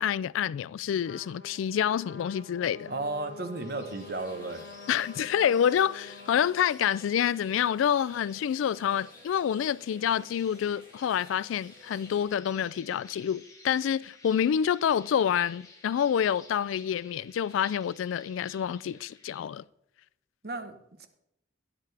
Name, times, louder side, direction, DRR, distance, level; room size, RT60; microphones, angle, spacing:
voice 1, 0.0-2.9 4.9-19.6, left 9 dB, 90° left, 0.3 m, -27 dB
Trumpet, 1.0-6.7, left 3 dB, 75° left, 1.3 m, -47 dB
voice 2, 2.9-4.6 20.4-21.1, right 2 dB, 50° right, 1.0 m, -34 dB
sound 1, 3.6-19.4, left 3 dB, 15° left, 1.6 m, -53 dB
sound 2, 4.0-12.3, equal, 30° right, 4.8 m, -55 dB
12.5 x 9.7 x 3.4 m
head